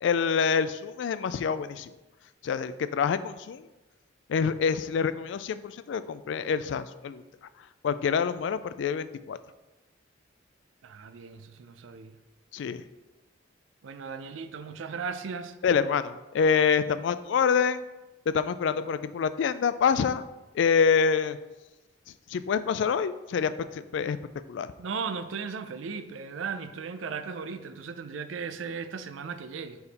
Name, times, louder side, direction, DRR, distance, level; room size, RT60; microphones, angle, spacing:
voice 1, 0.0-1.9 2.4-3.6 4.3-7.2 7.8-9.4 12.5-12.8 15.6-17.8 18.3-20.2 20.5-21.4 22.3-24.2 24.5-24.7, left 6 dB, 70° left, 14 dB, 0.3 m, -26 dB
voice 2, 10.8-12.2 13.8-15.6 24.8-29.8, right 5 dB, 90° right, 11 dB, 0.4 m, -36 dB
5.1 x 4.6 x 4.1 m, 1.1 s
head